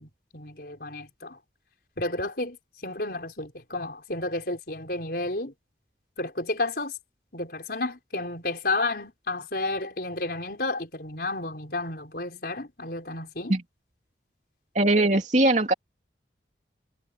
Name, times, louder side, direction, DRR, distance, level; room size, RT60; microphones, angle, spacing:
voice 1, 0.0-1.4 2.0-2.6 2.8-5.5 6.2-7.0 7.3-13.5, left 2 dB, 55° left, 5.6 m, -31 dB
voice 2, 14.7-15.7, right 2 dB, 40° right, 3.0 m, -20 dB
head